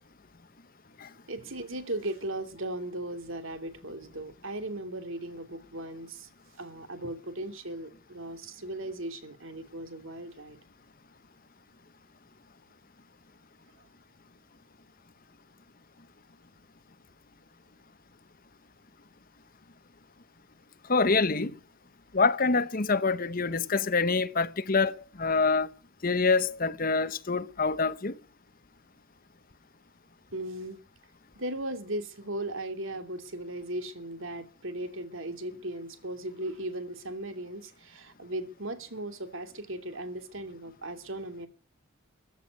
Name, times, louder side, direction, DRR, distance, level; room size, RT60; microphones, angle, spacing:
voice 1, 1.3-6.3 6.6-10.6 30.3-30.9 31.4-41.5, right 1 dB, 60° right, 2.7 m, -37 dB
voice 2, 20.9-21.5 22.1-25.7 26.0-28.1, left 4 dB, 40° left, 0.9 m, -26 dB
15.0 x 8.2 x 9.4 m
head